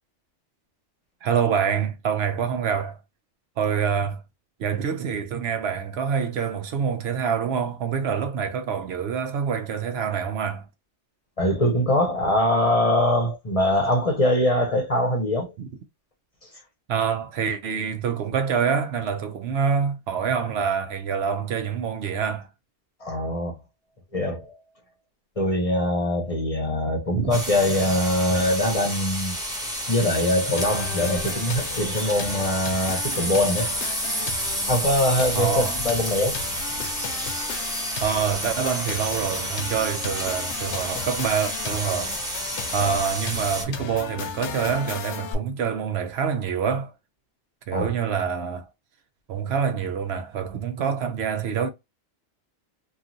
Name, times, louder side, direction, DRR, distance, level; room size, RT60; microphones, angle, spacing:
voice 1, 1.2-3.0 3.6-4.2 4.6-10.7 15.6-15.7 16.9-22.5 27.1-27.3 35.3-35.8 38.0-42.2 42.7-46.9 47.7-48.7 49.3-51.7, right 7 dB, 70° right, 0.8 m, -26 dB
voice 2, 11.4-15.5 23.0-23.6 24.1-24.5 25.4-29.4 29.9-33.7 34.7-36.4 42.8-43.0 47.7-47.9, left 1 dB, 35° left, 0.7 m, -23 dB
sound 1, 27.3-43.6, right 1 dB, 5° right, 0.9 m, -30 dB
sound 2, 30.6-45.3, left 6 dB, 80° left, 0.9 m, -35 dB
2.9 x 2.4 x 2.5 m
omnidirectional pair, 1.2 m